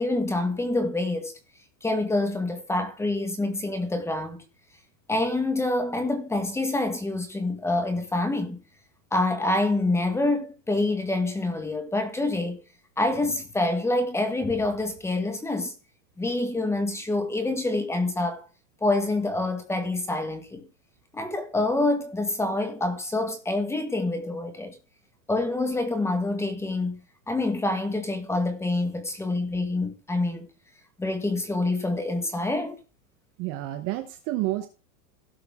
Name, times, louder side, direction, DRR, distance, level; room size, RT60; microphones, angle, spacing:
voice 1, 0.0-1.3 1.8-4.4 5.1-8.6 9.1-12.6 13.0-15.7 16.2-18.4 18.8-20.6 21.1-24.8 25.3-30.5 31.0-32.8, left 2 dB, 5° left, 1.2 m, -26 dB
voice 2, 33.4-34.7, right 16 dB, 30° right, 0.8 m, -29 dB
16.5 x 5.6 x 3.5 m
supercardioid pair, 150°, 48 cm